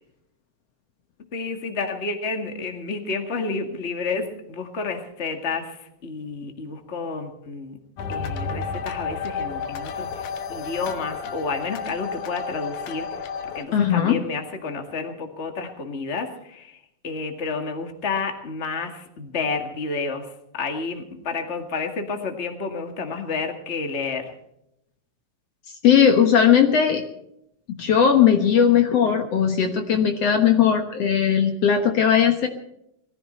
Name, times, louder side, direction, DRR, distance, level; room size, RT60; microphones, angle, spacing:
voice 1, 1.3-7.8 8.1-13.3 13.5-16.8 17.0-20.3 20.5-24.3, left 4 dB, 25° left, 4 dB, 1.9 m, -30 dB
sound 1, 8.0-13.7, left 5 dB, 85° left, 2.7 m, -31 dB
voice 2, 13.7-14.2 25.8-27.0 27.7-32.5, left 8 dB, 60° left, 4 dB, 2.3 m, -18 dB
21.0 x 14.5 x 4.4 m, 0.79 s
omnidirectional pair, 3.3 m